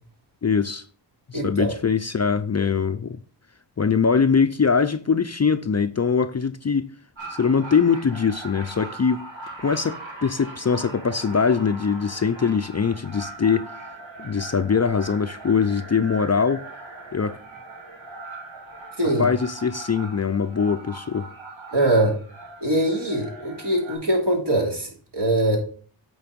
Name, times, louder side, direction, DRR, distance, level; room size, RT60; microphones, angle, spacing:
voice 1, 0.4-0.8 1.3-3.2 3.8-6.9 7.3-9.3 9.6-13.7 14.2-16.6 17.1-17.4 19.0-21.3, left 5 dB, 35° left, 0.5 m, -22 dB
voice 2, 1.3-1.7 19.0-19.3 21.7-22.2 22.6-25.6, right 1 dB, 60° right, 3.2 m, -22 dB
sound 1, 7.2-24.0, right 3 dB, 85° right, 2.9 m, -40 dB
8.4 x 4.6 x 5.2 m
wide cardioid pair, 55°, 45 cm